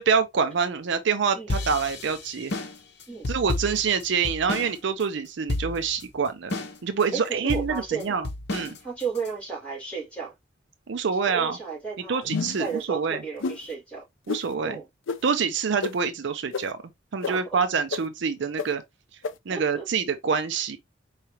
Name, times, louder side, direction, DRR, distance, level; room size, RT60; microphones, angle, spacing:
voice 1, 0.0-2.5 3.3-6.6 6.8-8.8 10.9-11.6 12.1-13.2 14.3-14.8 15.2-16.8 17.1-18.8 19.5-20.8, right 5 dB, 65° right, 0.5 m, -26 dB
sound 1, 1.5-4.7 5.0-5.1 5.5-6.0 6.5-7.0 7.5-9.3, left 2 dB, 60° left, 0.9 m, -31 dB
voice 2, 7.1-8.2 8.8-10.3 11.1-12.3 12.6-14.0 14.6-14.8 17.3-17.4 19.5-19.8, right 5 dB, 5° left, 3.0 m, -34 dB
sound 2, 12.3-12.7 13.4-13.6 14.3-14.4 15.1-15.2 15.8-15.9 16.5-16.6 17.2-17.3 17.9-18.0 18.6-18.7 19.2-19.3, left 5 dB, 80° left, 0.5 m, -29 dB
4.7 x 3.2 x 2.8 m
head